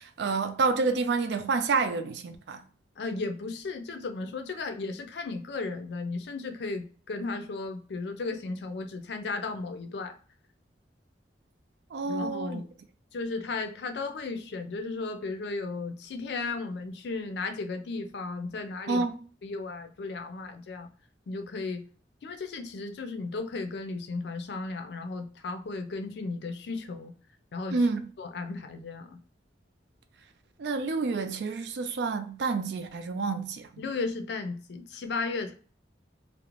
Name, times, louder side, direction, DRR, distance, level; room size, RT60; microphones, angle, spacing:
voice 1, 0.0-2.6 11.9-12.6 18.9-19.2 27.7-28.1 30.6-33.8, right 4 dB, 70° right, 0.4 m, -29 dB
voice 2, 3.0-10.2 12.0-12.7 13.1-19.1 19.4-20.9 21.3-21.8 22.2-27.1 27.5-27.8 28.2-29.2 33.8-35.5, left 3 dB, 65° left, 0.4 m, -35 dB
2.5 x 2.0 x 3.0 m
head